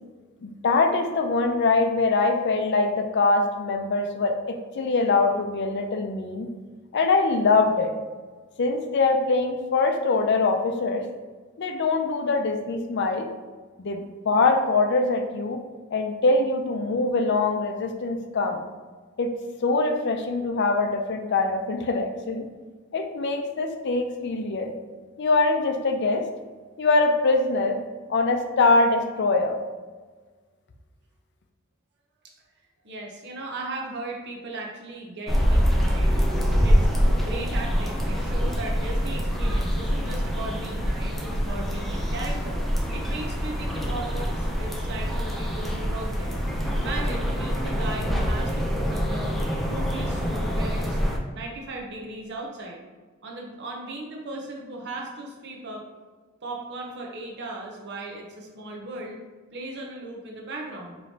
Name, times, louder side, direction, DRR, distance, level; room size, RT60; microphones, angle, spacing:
voice 1, 0.4-6.5 6.9-7.9 8.6-11.1 11.6-13.3 13.8-15.6 15.9-18.6 19.2-19.3 19.6-22.5 22.9-24.7 25.2-26.3 26.8-27.8 28.1-29.6, left 3 dB, 55° left, 5 dB, 0.5 m, -23 dB
voice 2, 32.8-36.3 36.6-42.6 42.9-46.4 46.7-49.3 49.6-51.0 51.3-52.8 53.2-55.9 56.4-59.2 59.5-61.0, right 2 dB, 55° right, 0 dB, 0.8 m, -37 dB
sound 1, 35.3-51.2, equal, ahead, 0.5 m, -25 dB
4.8 x 3.1 x 2.8 m, 1.4 s
head